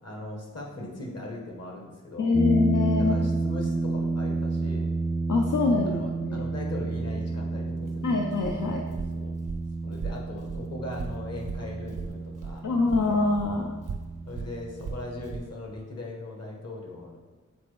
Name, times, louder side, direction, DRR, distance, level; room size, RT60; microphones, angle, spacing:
voice 1, 0.0-2.3 3.0-4.9 5.4-8.2 8.9-9.3 9.8-12.6 13.0-13.3 14.3-17.2, left 1 dB, 55° left, 0 dB, 1.3 m, -39 dB
voice 2, 2.2-3.3 5.3-6.4 8.0-8.8 12.6-13.7, left 3 dB, 75° left, 1 dB, 0.6 m, -25 dB
sound 1, 2.3-15.4, right 3 dB, 5° right, 0.4 m, -31 dB
Walk footsteps, 7.8-12.6 12.9-15.5, right 4 dB, 85° right, 0.7 m, -38 dB
7.0 x 4.2 x 3.3 m, 1.3 s
wide cardioid pair, 90°, 31 cm